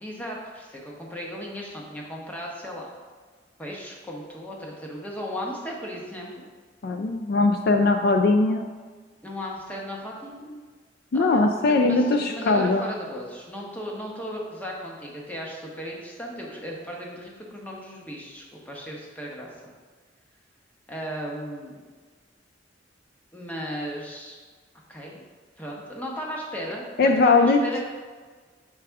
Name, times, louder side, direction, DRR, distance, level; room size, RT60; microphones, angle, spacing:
voice 1, 0.0-2.9 3.6-6.3 9.2-10.6 11.1-11.4 11.7-19.5 20.9-21.7 23.3-24.4 24.9-25.2 25.6-27.8, equal, 10° left, -2 dB, 0.9 m, -36 dB
voice 2, 6.8-8.6 11.1-12.9 27.0-27.6, left 3 dB, 60° left, 4 dB, 0.4 m, -20 dB
5.8 x 4.8 x 3.5 m, 1.5 s
head